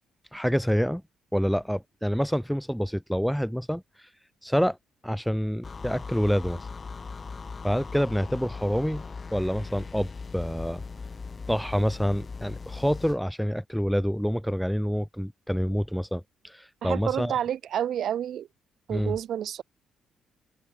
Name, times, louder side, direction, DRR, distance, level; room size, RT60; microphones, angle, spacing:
voice 1, 0.3-1.0 1.3-4.1 4.4-4.8 5.0-6.6 7.6-9.0 9.3-10.8 11.5-17.4 18.9-19.1, equal, ahead, 1.2 m, -27 dB
sound 1, 5.6-13.2, left 4 dB, 35° left, 3.3 m, -39 dB
voice 2, 16.8-18.5 18.9-19.6, right 10 dB, 70° right, 2.2 m, -29 dB
open air
cardioid pair, 90°, 0 cm